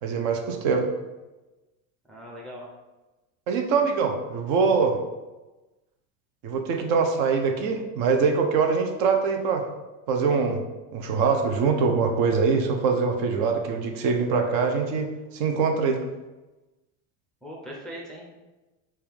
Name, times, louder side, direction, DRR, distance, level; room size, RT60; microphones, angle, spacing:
voice 1, 0.0-0.9 3.5-5.0 6.4-9.7 10.1-10.6 10.9-16.0, right 5 dB, 50° right, 4 dB, 0.6 m, -23 dB
voice 2, 2.1-2.7 17.4-18.5, equal, ahead, -4 dB, 0.5 m, -40 dB
4.3 x 2.4 x 3.5 m, 1.1 s
supercardioid pair, 120°, 43 cm